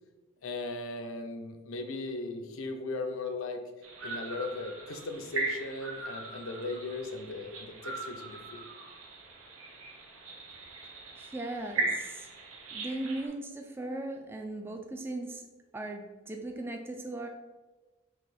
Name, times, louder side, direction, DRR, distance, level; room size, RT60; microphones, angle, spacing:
voice 1, 0.4-3.6 4.0-8.6, left 2 dB, 85° left, 6 dB, 0.6 m, -37 dB
sound 1, 3.8-13.3, right 3 dB, 85° right, 0.8 m, -39 dB
voice 2, 11.2-12.3 12.7-15.5 15.7-17.3, right 2 dB, 10° right, 3 dB, 0.3 m, -38 dB
3.8 x 2.9 x 4.1 m, 1.2 s
head